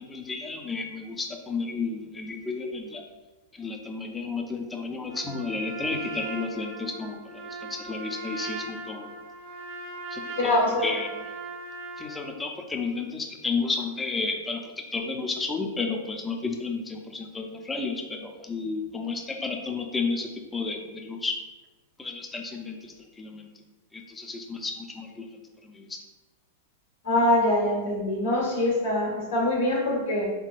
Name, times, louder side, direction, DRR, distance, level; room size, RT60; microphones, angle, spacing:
voice 1, 0.0-3.0 3.5-9.1 10.1-11.3 12.0-21.4 22.0-23.5 23.9-25.3 25.6-26.0, left 4 dB, 10° left, 3 dB, 0.5 m, -32 dB
Trumpet, 5.1-12.3, right 3 dB, 70° right, 0.7 m, -39 dB
voice 2, 10.4-10.8 27.0-30.3, left 1 dB, 85° left, -3 dB, 1.5 m, -24 dB
3.8 x 3.6 x 2.5 m, 1.2 s
hypercardioid pair, 125°, 0 cm